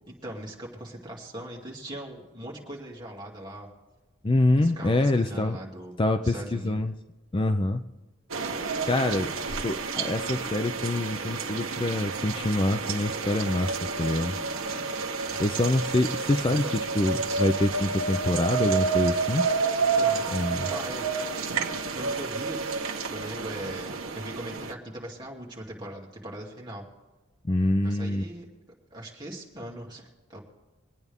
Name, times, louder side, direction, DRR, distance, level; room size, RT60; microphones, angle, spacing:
voice 1, 0.1-3.7 4.6-6.8 15.3-15.5 16.5-16.7 17.1-17.4 19.9-20.3 20.6-21.1 21.9-22.6 23.1-26.8 27.8-28.5 28.9-30.4, right 1 dB, 20° right, -3 dB, 2.6 m, -40 dB
voice 2, 4.2-5.6 6.0-6.9 7.3-7.8 8.9-9.3 9.6-14.3 15.4-16.7 16.9-19.5 20.3-20.7 27.4-28.2, left 2 dB, 25° left, 7 dB, 0.5 m, -25 dB
sound 1, 8.3-24.7, right 4 dB, 85° right, 1.2 m, -30 dB
24.0 x 9.5 x 3.6 m, 1.2 s
head